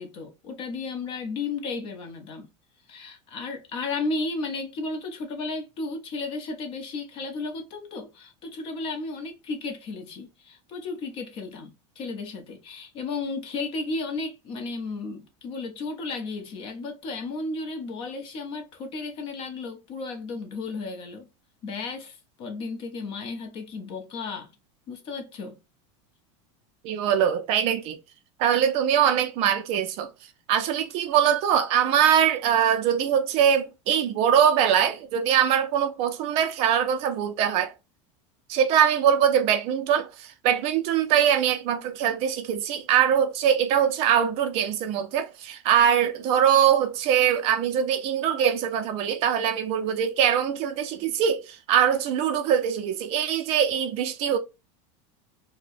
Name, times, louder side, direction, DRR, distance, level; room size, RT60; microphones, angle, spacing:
voice 1, 0.0-2.5 2.9-21.3 21.6-24.5 24.9-25.6, left 3 dB, 35° left, 0.8 m, -34 dB
voice 2, 26.8-28.0 28.4-30.1 30.5-37.7 38.5-54.4, right 9 dB, 40° right, 0.4 m, -22 dB
4.1 x 2.1 x 2.5 m
supercardioid pair, 165°, 16 cm